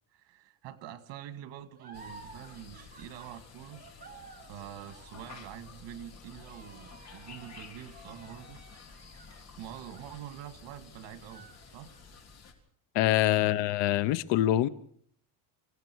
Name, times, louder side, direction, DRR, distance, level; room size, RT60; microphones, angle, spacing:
voice 1, 0.1-3.8 4.5-8.6 9.6-11.9 13.3-13.7, right 11 dB, 90° right, 10 dB, 2.2 m, -46 dB
sound 1, 1.7-10.8 11.2-12.2, right 4 dB, 20° right, 4.2 m, -54 dB
sound 2, 1.9-12.5, left 5 dB, 35° left, 3.5 m, -51 dB
voice 2, 12.9-14.7, left 14 dB, 85° left, 15 dB, 1.0 m, -25 dB
26.5 x 16.5 x 6.3 m, 0.63 s
cardioid pair, 160°, 42 cm